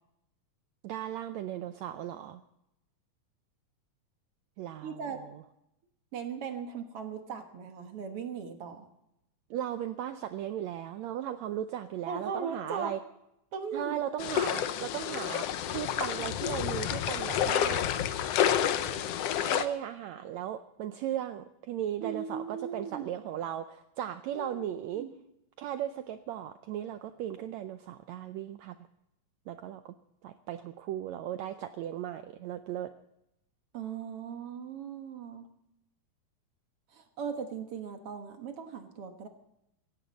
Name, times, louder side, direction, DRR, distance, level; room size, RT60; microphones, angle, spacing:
voice 1, 0.8-2.4 4.6-5.4 9.5-13.0 13.7-17.9 19.4-25.1 25.6-28.8 29.5-29.9 30.2-32.9, right 11 dB, 80° right, 9 dB, 1.6 m, -37 dB
voice 2, 4.8-5.3 6.1-8.9 12.1-12.9 13.5-13.9 22.0-23.1 24.3-25.1 33.7-35.5 36.9-39.3, right 6 dB, 55° right, 6 dB, 1.9 m, -38 dB
sound 1, 14.2-19.7, left 10 dB, 80° left, 1.4 m, -29 dB
17.5 x 15.5 x 4.1 m, 0.82 s
omnidirectional pair, 3.8 m